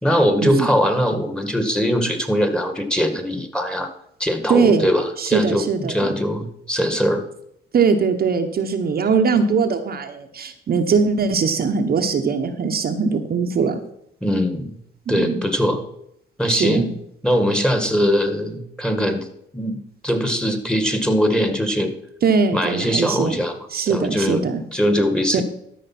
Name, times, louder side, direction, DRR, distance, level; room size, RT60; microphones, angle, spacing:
voice 1, 0.0-3.9 4.2-7.2 14.2-14.7 15.1-15.8 16.4-16.9 17.2-19.2 19.5-21.9 22.5-23.5 23.9-25.4, equal, 5° left, 6 dB, 1.7 m, -21 dB
voice 2, 4.5-4.9 5.2-6.1 7.7-13.8 15.1-15.5 16.5-16.9 22.2-23.4 23.7-24.6 25.3-25.4, right 5 dB, 50° right, 5 dB, 1.1 m, -21 dB
12.5 x 5.1 x 6.0 m, 0.73 s
cardioid pair, 90°, 20 cm